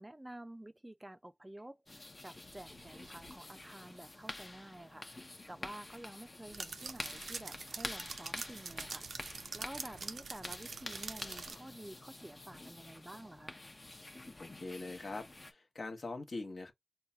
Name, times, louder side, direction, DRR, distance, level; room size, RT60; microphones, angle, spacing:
voice 1, 0.0-9.1 9.5-13.6, right 1 dB, 20° right, 0.4 m, -50 dB
sound 1, 1.9-15.5, left 2 dB, 40° left, 0.7 m, -48 dB
sound 2, 2.5-3.3 6.5-11.6, right 4 dB, 85° right, 0.5 m, -45 dB
voice 2, 14.3-16.7, left 3 dB, 65° left, 1.0 m, -43 dB
4.6 x 2.3 x 2.7 m
cardioid pair, 55°, 0 cm